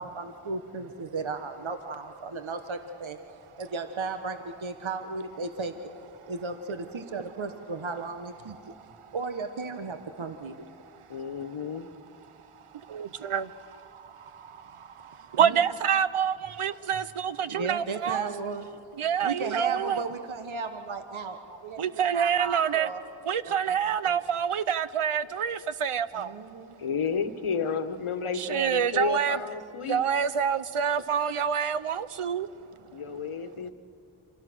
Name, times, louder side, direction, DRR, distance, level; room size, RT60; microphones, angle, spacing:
voice 1, 0.0-5.7 6.3-8.6 9.1-10.6 15.4-15.6 16.4-16.6 17.5-18.7 19.2-23.0 23.4-24.2 26.1-26.8 32.4-33.3, right 4 dB, 65° right, 7 dB, 1.3 m, -35 dB
voice 2, 11.1-11.9 26.8-30.0 32.9-33.7, left 6 dB, 80° left, 10 dB, 1.3 m, -31 dB
voice 3, 12.9-13.5 13.9-14.0 14.3-18.3 19.0-20.0 21.8-22.9 23.3-26.3 28.3-29.4 29.8-32.5, right 8 dB, 85° right, 14 dB, 0.9 m, -27 dB
29.0 x 26.0 x 6.2 m, 2.4 s
wide cardioid pair, 50°, 49 cm